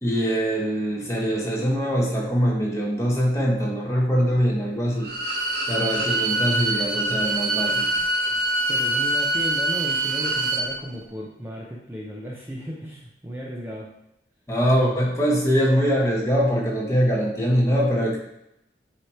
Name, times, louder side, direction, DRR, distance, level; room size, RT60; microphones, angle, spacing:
voice 1, 0.0-5.1 5.7-7.9 14.5-18.2, equal, 15° left, -3 dB, 1.3 m, -23 dB
Bowed string instrument, 5.0-10.7, right 2 dB, 65° right, 1.3 m, -24 dB
voice 2, 8.7-13.9, equal, 15° right, -4 dB, 0.7 m, -35 dB
8.0 x 3.0 x 4.3 m, 0.83 s
head